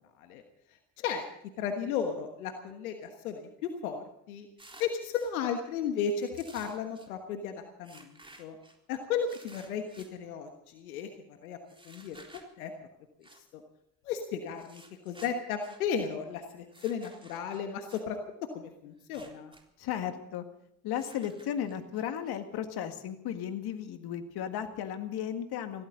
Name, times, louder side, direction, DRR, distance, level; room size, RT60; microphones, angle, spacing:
voice 1, 1.6-4.5 4.8-8.5 8.9-11.6 11.8-12.7 13.2-13.3 13.5-13.6 14.0-18.2 18.5-19.5, left 7 dB, 85° left, 5 dB, 1.4 m, -35 dB
sound 1, 4.6-5.3 6.2-7.1 7.8-8.8 9.3-10.1 11.7-12.5 13.2-13.4 14.5-15.8 16.7-18.0 19.0-19.6 19.9-20.0 20.9-22.0, right 2 dB, 10° right, 3.8 m, -54 dB
voice 2, 19.8-20.4 20.8-25.8, left 9 dB, 65° left, 7 dB, 2.0 m, -35 dB
22.5 x 16.5 x 3.9 m, 0.76 s
hypercardioid pair, 55°, 42 cm